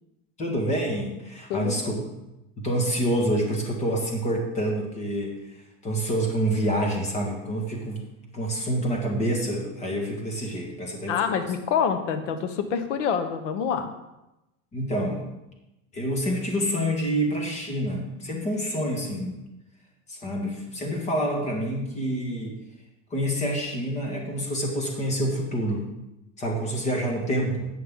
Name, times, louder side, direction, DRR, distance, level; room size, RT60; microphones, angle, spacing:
voice 1, 0.4-2.0 2.6-5.3 5.8-8.1 8.3-11.2 14.7-15.2 15.9-19.4 20.1-22.5 23.1-25.9 26.4-27.7, right 1 dB, 20° left, 1 dB, 1.5 m, -27 dB
voice 2, 1.5-1.9 11.1-13.9, left 7 dB, 75° left, 9 dB, 1.1 m, -26 dB
11.0 x 7.8 x 3.7 m, 0.94 s
supercardioid pair, 170°, 37 cm